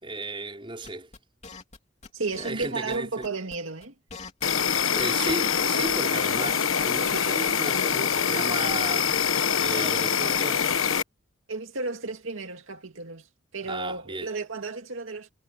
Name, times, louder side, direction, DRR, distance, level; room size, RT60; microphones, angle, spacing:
voice 1, 0.0-1.1 2.3-3.3 4.9-9.1 9.5-10.7 13.7-14.3, right 2 dB, 25° right, 5.0 m, -34 dB
sound 1, 0.8-1.8 2.0-2.7 2.9-3.0 3.2-3.6 3.8-5.9 6.2-7.1, left 4 dB, 35° left, 3.4 m, -43 dB
voice 2, 2.1-3.9 11.5-15.3, right 3 dB, 85° right, 2.2 m, -33 dB
Insect, 4.4-11.0, left 7 dB, 90° left, 1.3 m, -24 dB
head